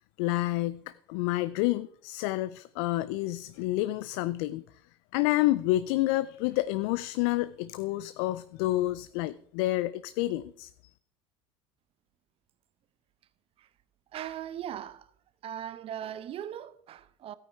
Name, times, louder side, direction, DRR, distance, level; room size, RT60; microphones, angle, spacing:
voice 1, 0.2-4.6 5.1-10.7, left 17 dB, 65° left, 0.4 m, -29 dB
voice 2, 14.1-15.1 15.4-17.3, right 10 dB, 40° right, 0.7 m, -39 dB
13.5 x 9.1 x 3.5 m
hypercardioid pair, 80°, 15 cm